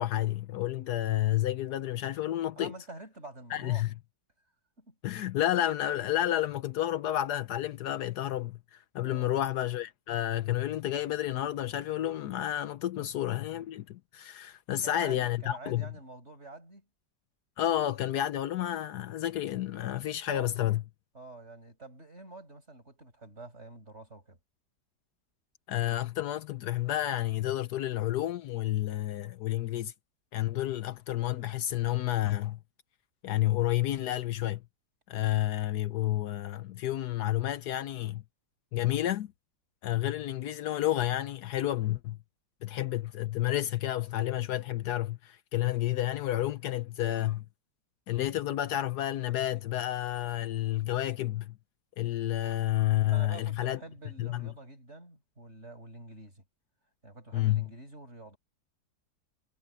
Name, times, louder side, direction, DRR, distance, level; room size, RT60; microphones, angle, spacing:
voice 1, 0.0-2.7 3.5-3.9 5.0-15.9 17.6-20.8 25.7-29.9 30.3-32.6 33.2-34.6 35.1-38.2 38.7-39.3 39.8-42.2 42.6-47.4 48.1-51.6 52.0-53.8 54.2-54.5 57.3-57.7, left 13 dB, 70° left, 1.2 m, -30 dB
voice 2, 2.6-3.8 4.8-5.0 9.0-9.3 13.0-13.1 14.8-16.9 20.3-20.5 21.1-24.4 53.1-56.4 57.0-58.4, right 2 dB, 40° right, 6.7 m, -47 dB
omnidirectional pair, 1.8 m